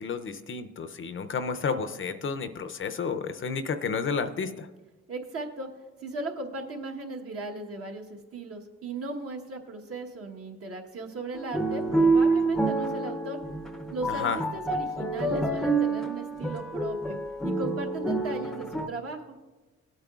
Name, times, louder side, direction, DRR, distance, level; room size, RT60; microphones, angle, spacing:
voice 1, 0.0-4.7 14.1-14.4, left 5 dB, 40° left, 9 dB, 0.6 m, -31 dB
voice 2, 5.1-5.7 6.0-13.4 13.9-19.4, right 2 dB, 50° right, 2 dB, 1.2 m, -37 dB
sound 1, 11.3-18.9, right 3 dB, ahead, 0.6 m, -27 dB
17.0 x 8.8 x 2.4 m, 1.2 s
cardioid pair, 90°, 30 cm